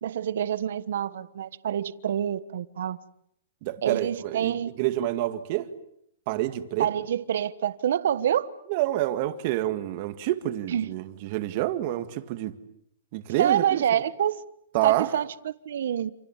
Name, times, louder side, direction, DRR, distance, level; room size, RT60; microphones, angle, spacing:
voice 1, 0.0-3.0 3.8-4.7 6.8-8.5 10.7-10.9 13.4-14.4 14.8-16.1, right 9 dB, 60° right, 1.3 m, -27 dB
voice 2, 3.6-4.5 4.8-5.7 6.3-6.9 8.7-12.5 13.1-14.0 14.7-15.1, right 15 dB, 35° right, 2.0 m, -28 dB
28.5 x 28.0 x 7.4 m
hypercardioid pair, 170°, 0 cm